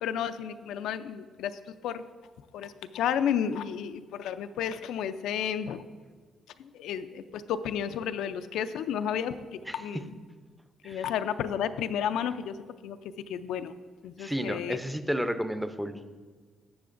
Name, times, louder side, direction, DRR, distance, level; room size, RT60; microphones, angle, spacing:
voice 1, 0.0-1.6 1.8-2.0 2.5-5.8 6.6-10.1 10.8-12.5 12.8-13.0 13.3-13.7 14.0-14.8, left 8 dB, 85° left, 11 dB, 0.3 m, -32 dB
voice 2, 9.7-10.0 10.8-11.1 14.2-16.0, equal, 5° right, 10 dB, 0.5 m, -32 dB
11.5 x 7.5 x 2.5 m, 1.5 s
cardioid pair, 90°, 0 cm